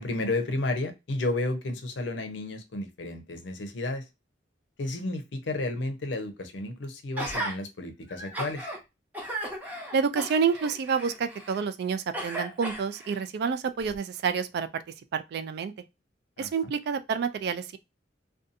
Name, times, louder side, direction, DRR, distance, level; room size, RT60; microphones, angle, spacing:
voice 1, 0.0-4.0 4.8-8.6 16.4-16.7, left 2 dB, 75° left, 0.6 m, -32 dB
Gasp, 7.2-7.6 8.1-8.8 9.1-11.6 12.1-13.2 13.8-14.0, right 1 dB, 10° right, 0.7 m, -36 dB
voice 2, 9.9-15.7 16.4-17.8, right 6 dB, 60° right, 0.3 m, -29 dB
2.6 x 2.2 x 2.5 m
head